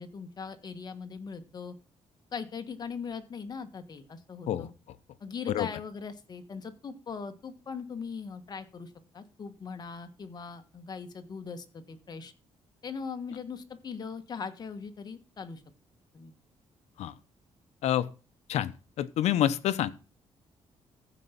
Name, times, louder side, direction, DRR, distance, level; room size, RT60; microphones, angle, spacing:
voice 1, 0.0-1.7 2.3-4.7 5.2-12.3 12.8-15.6 16.1-16.3, left 5 dB, 40° left, 1.6 m, -40 dB
voice 2, 19.0-19.9, left 11 dB, 90° left, 0.9 m, -27 dB
15.0 x 5.2 x 5.9 m
cardioid pair, 140°, 11 cm